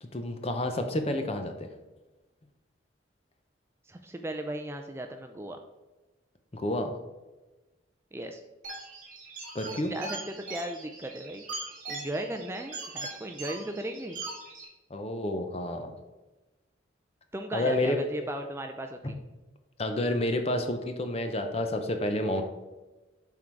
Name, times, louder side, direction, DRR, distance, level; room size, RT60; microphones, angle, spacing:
voice 1, 0.0-1.7 6.5-7.0 9.5-9.9 14.9-15.9 17.5-18.0 19.0-19.1 19.8-22.4, left 1 dB, 30° left, 6 dB, 0.7 m, -29 dB
voice 2, 3.9-5.6 8.1-8.4 9.7-11.4 11.9-14.2 17.3-19.2, right 1 dB, 15° right, 5 dB, 0.4 m, -36 dB
sound 1, 8.6-14.7, right 3 dB, 45° right, 2.1 m, -41 dB
7.5 x 3.8 x 4.6 m, 1.1 s
head